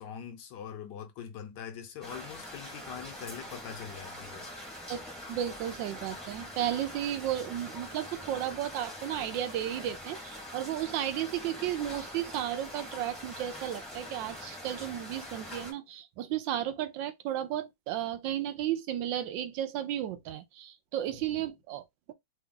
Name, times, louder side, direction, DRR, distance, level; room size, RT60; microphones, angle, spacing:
voice 1, 0.0-4.5 21.3-21.5, left 8 dB, 70° left, 1.3 m, -43 dB
sound 1, 2.0-15.7, left 1 dB, ahead, 0.8 m, -44 dB
voice 2, 5.3-22.1, right 11 dB, 80° right, 1.3 m, -34 dB
3.5 x 2.3 x 3.7 m
omnidirectional pair, 2.0 m